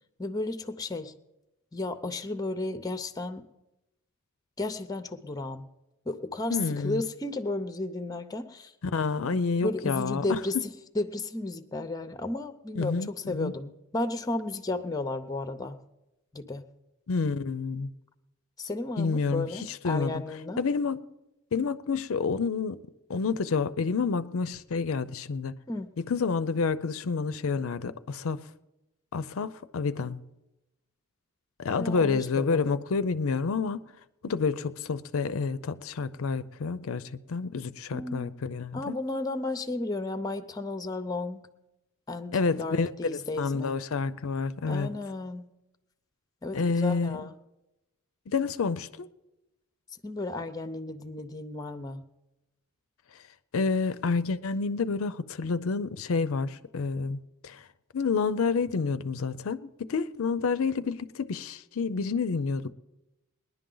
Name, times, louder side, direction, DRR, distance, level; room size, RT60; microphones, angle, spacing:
voice 1, 0.2-1.1 1.7-3.4 4.6-5.6 6.1-8.7 9.3-10.7 10.9-15.8 16.3-16.6 18.6-20.6 25.7-26.0 31.7-32.8 37.9-38.3 38.7-41.4 42.1-43.8 44.7-45.5 46.4-47.3 50.0-52.0, left 2 dB, 15° left, 0.6 m, -33 dB
voice 2, 6.5-7.0 8.8-10.4 12.8-13.5 17.1-17.9 19.0-20.2 20.6-21.0 21.5-22.8 23.1-25.6 26.0-28.4 29.1-30.2 31.6-33.8 34.2-39.0 42.3-44.9 46.5-47.3 48.3-49.1 53.5-57.7 57.9-62.7, left 4 dB, 65° left, 0.5 m, -29 dB
20.5 x 10.5 x 3.9 m
head